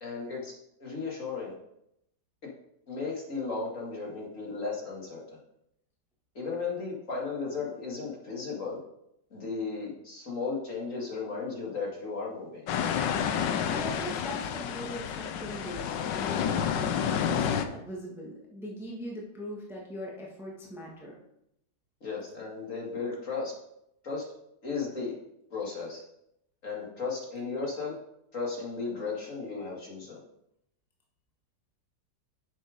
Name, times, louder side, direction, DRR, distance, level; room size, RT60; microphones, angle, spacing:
voice 1, 0.0-0.5 0.8-1.5 2.9-5.4 6.3-8.8 9.3-12.7 22.0-23.5 24.0-24.2 24.6-25.1 25.5-26.0 26.6-28.0 28.3-30.2, left 4 dB, 45° left, -3 dB, 2.3 m, -35 dB
sound 1, 12.7-17.6, left 8 dB, 75° left, 1.3 m, -29 dB
voice 2, 13.7-21.2, equal, ahead, -3 dB, 1.5 m, -40 dB
7.2 x 7.2 x 5.1 m, 0.79 s
omnidirectional pair, 2.0 m